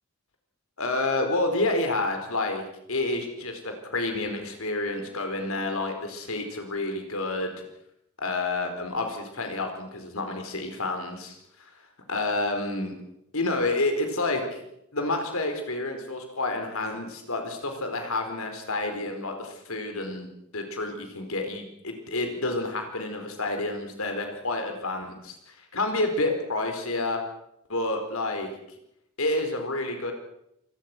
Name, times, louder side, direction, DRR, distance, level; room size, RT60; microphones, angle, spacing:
voice 1, 0.8-7.5 8.2-11.4 12.1-12.9 13.3-14.6 14.9-20.3 20.5-27.2 27.7-28.5 29.2-30.1, left 2 dB, 75° left, 5 dB, 4.8 m, -29 dB
27.5 x 18.0 x 6.2 m, 0.80 s
head